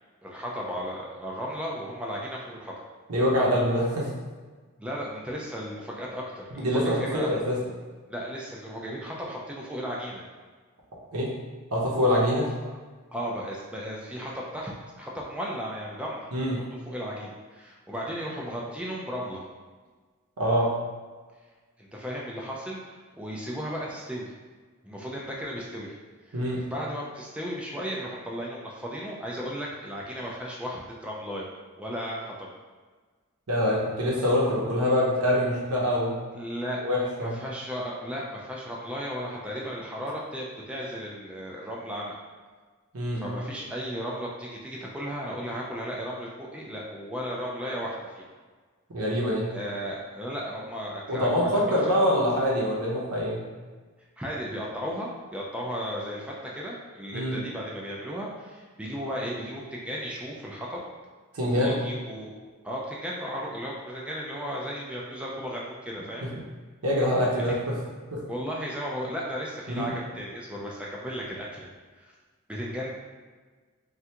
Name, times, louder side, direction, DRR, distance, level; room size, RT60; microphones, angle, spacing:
voice 1, 0.2-2.7 4.8-7.3 8.1-10.2 13.1-19.4 21.8-24.3 24.8-25.9 26.3-26.4 26.7-31.5 31.8-32.5 36.3-36.8 37.2-42.2 43.2-48.3 49.5-51.6 54.2-60.8 61.4-62.3 62.6-66.3 67.5-67.6 68.3-71.7 72.5-72.9, equal, 5° right, -4 dB, 0.3 m, -35 dB
voice 2, 3.1-4.1 6.5-7.7 11.1-11.3 11.7-12.5 16.3-16.6 20.4-20.7 26.3-26.6 33.5-36.2 36.8-37.4 42.9-43.3 48.9-49.5 51.1-53.4 57.1-57.4 61.3-61.8 66.2-66.4 66.8-67.8 68.1-68.2 69.7-69.9, equal, 70° right, -4 dB, 0.8 m, -25 dB
3.3 x 2.4 x 2.8 m, 1.4 s
head